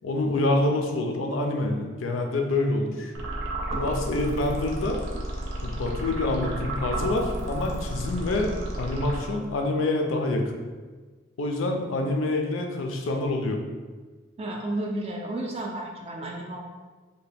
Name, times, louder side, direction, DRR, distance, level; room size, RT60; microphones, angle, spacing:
voice 1, 0.0-3.1 3.7-5.0 5.6-10.6 11.4-13.6, left 2 dB, 85° left, 3 dB, 0.4 m, -26 dB
sound 1, 3.1-9.6, right 1 dB, 75° right, 0.6 m, -32 dB
voice 2, 14.4-16.6, right 1 dB, 30° right, 0 dB, 0.3 m, -32 dB
2.8 x 2.2 x 3.3 m, 1.4 s
head